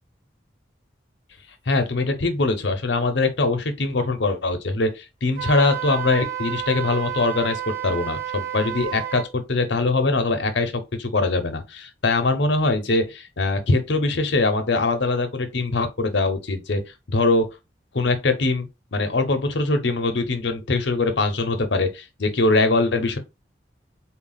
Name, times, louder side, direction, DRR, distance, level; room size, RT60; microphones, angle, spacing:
voice 1, 1.7-10.7 11.0-16.8 17.1-17.5 17.9-23.2, left 3 dB, 70° left, 0.8 m, -22 dB
Wind instrument woodwind instrument, 5.3-9.3, right 11 dB, 45° right, 0.7 m, -30 dB
3.9 x 2.3 x 3.9 m
head